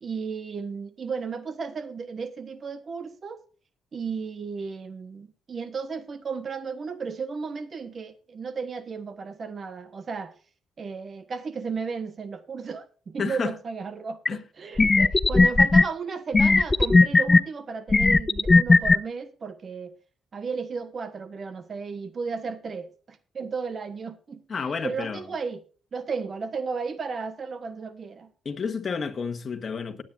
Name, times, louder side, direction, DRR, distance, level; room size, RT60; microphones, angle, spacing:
voice 1, 0.0-3.4 3.9-10.3 10.8-19.9 20.3-25.6 25.9-28.3, right 5 dB, 45° right, 1.3 m, -34 dB
voice 2, 13.2-13.5 14.3-14.4 24.5-25.2 28.4-30.0, left 5 dB, 40° left, 1.7 m, -30 dB
sound 1, 14.3-14.4 14.8-15.8 16.3-17.4 17.9-19.0, left 3 dB, 25° left, 0.5 m, -16 dB
19.0 x 9.1 x 2.6 m
cardioid pair, 90°, 0 cm